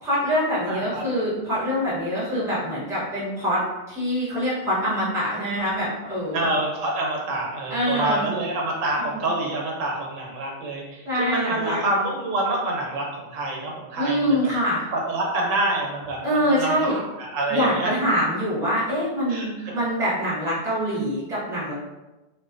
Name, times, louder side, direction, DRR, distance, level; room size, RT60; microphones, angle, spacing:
voice 1, 0.0-6.5 7.7-8.3 9.0-9.2 11.0-11.8 14.0-14.8 16.2-17.0 17.5-21.7, equal, 5° right, -8 dB, 0.6 m, -24 dB
voice 2, 0.7-1.0 6.3-14.5 14.9-16.2 16.5-17.9 19.3-19.7, right 2 dB, 85° right, -1 dB, 1.0 m, -27 dB
2.4 x 2.2 x 2.4 m, 1.1 s
omnidirectional pair, 1.3 m